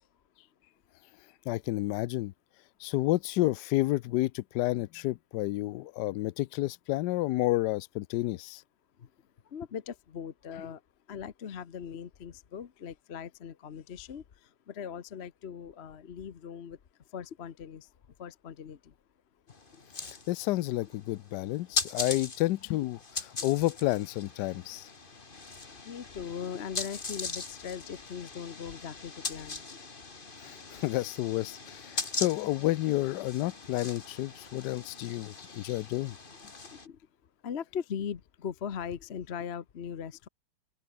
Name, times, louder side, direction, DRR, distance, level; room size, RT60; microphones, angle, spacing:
voice 1, 1.5-2.3 2.8-8.6 20.0-24.9 30.4-36.2, left 17 dB, 80° left, 0.9 m, -30 dB
voice 2, 9.5-10.8 11.1-16.8 17.1-17.9 18.2-18.9 25.8-29.6 36.8-37.0 37.4-40.3, left 7 dB, 45° left, 0.8 m, -39 dB
sound 1, 19.5-36.9, left 3 dB, 25° left, 2.0 m, -40 dB
open air
omnidirectional pair, 2.3 m